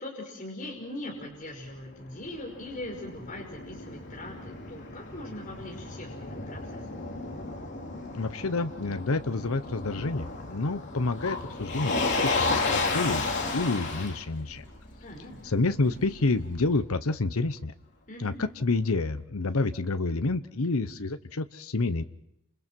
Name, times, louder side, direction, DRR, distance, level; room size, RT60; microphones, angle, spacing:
voice 1, 0.0-6.8 15.0-15.4 18.1-18.4, left 1 dB, 35° left, -1 dB, 5.3 m, -41 dB
Motor vehicle (road), 1.7-16.7, left 3 dB, 50° left, 3.2 m, -33 dB
voice 2, 8.1-14.6 15.4-17.7 18.2-22.0, left 3 dB, 75° left, 10 dB, 0.9 m, -29 dB
29.0 x 27.5 x 4.6 m, 0.80 s
head